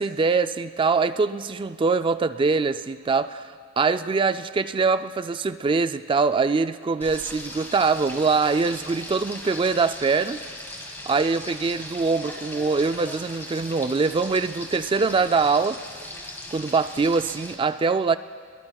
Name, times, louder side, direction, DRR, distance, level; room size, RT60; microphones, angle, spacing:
voice 1, 0.0-3.5 3.8-10.4 11.1-15.8 16.5-18.2, right 4 dB, 25° right, 12 dB, 0.3 m, -23 dB
Frying (food), 7.0-17.5, left 1 dB, 10° left, 1.7 m, -39 dB
24.0 x 22.0 x 2.3 m, 2.1 s
head